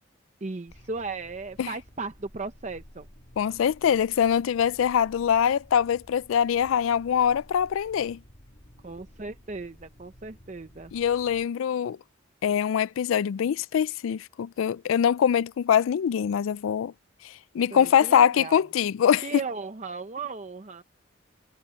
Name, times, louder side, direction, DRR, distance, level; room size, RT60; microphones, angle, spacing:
voice 1, 0.4-3.1 8.8-10.9 17.7-18.6 19.2-20.8, right 4 dB, 35° right, 0.6 m, -36 dB
sound 1, 0.7-11.5, equal, 40° left, 1.9 m, -53 dB
voice 2, 3.4-8.2 10.9-12.0 12.4-16.9 17.2-19.3, left 8 dB, 85° left, 0.3 m, -23 dB
head